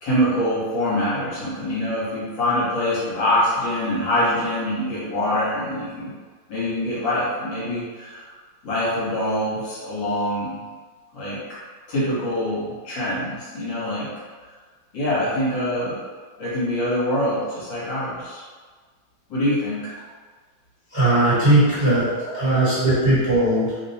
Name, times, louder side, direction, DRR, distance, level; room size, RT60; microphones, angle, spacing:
voice 1, 0.0-6.1 6.5-8.4 8.6-10.6 11.1-11.4 11.9-14.1 14.9-16.0 16.4-18.4 19.3-19.8, left 1 dB, 65° left, -9 dB, 1.8 m, -24 dB
voice 2, 20.9-23.8, right 1 dB, 20° right, -12 dB, 1.1 m, -19 dB
3.6 x 2.2 x 4.0 m, 1.5 s
omnidirectional pair, 2.3 m